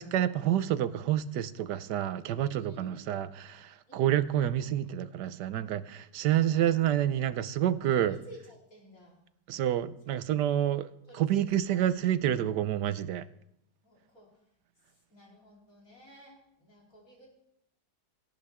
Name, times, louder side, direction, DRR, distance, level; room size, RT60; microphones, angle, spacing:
voice 1, 0.0-8.2 9.5-10.9 11.2-13.3, right 11 dB, 85° right, 1.3 m, -28 dB
voice 2, 2.6-3.1 3.9-4.1 7.9-9.2 10.0-10.7 11.1-11.9 13.8-14.3 14.9-17.3, equal, 55° left, 4.4 m, -54 dB
18.0 x 14.5 x 3.6 m
omnidirectional pair, 1.8 m